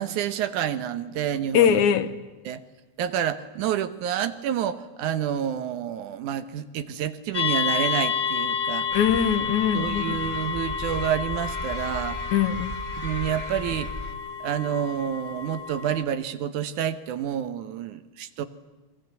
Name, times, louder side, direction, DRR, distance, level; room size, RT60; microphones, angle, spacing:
voice 1, 0.0-1.8 2.5-2.6 3.0-8.9 9.7-12.2 13.0-13.9 14.4-18.5, right 9 dB, 80° right, 11 dB, 2.6 m, -28 dB
voice 2, 1.5-2.1 8.9-10.0 12.3-12.7, left 8 dB, 75° left, 11 dB, 2.5 m, -21 dB
sound 1, 7.3-16.0, left 7 dB, 55° left, 0.7 m, -30 dB
sound 2, 8.9-14.1, equal, 20° right, 3.0 m, -37 dB
29.0 x 22.5 x 8.2 m, 1.1 s
omnidirectional pair, 3.5 m